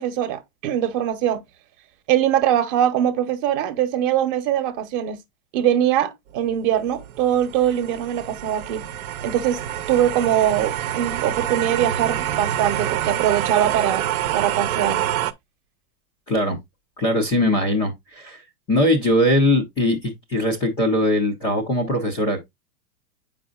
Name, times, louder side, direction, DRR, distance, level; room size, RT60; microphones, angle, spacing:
voice 1, 0.0-1.4 2.1-5.2 5.5-8.8 9.2-9.6 9.9-14.1 14.3-15.0, right 10 dB, 35° right, 0.9 m, -22 dB
sound 1, 6.5-15.3, right 11 dB, 65° right, 0.8 m, -27 dB
voice 2, 16.3-16.6 17.0-18.4 18.7-22.4, left 1 dB, 10° left, 0.3 m, -21 dB
8.5 x 5.1 x 2.3 m
supercardioid pair, 150°, 46 cm